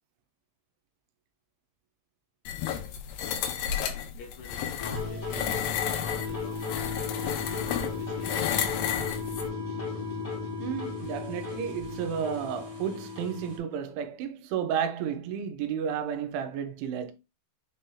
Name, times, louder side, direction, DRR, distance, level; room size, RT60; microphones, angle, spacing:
sound 1, 2.5-9.5, left 9 dB, 85° left, 2.2 m, -32 dB
voice 1, 4.2-8.6, left 5 dB, 70° left, 2.9 m, -48 dB
sound 2, 4.8-13.6, left 4 dB, 40° left, 0.9 m, -35 dB
voice 2, 10.6-17.1, right 8 dB, 85° right, 3.1 m, -32 dB
6.9 x 3.3 x 2.3 m
omnidirectional pair, 5.4 m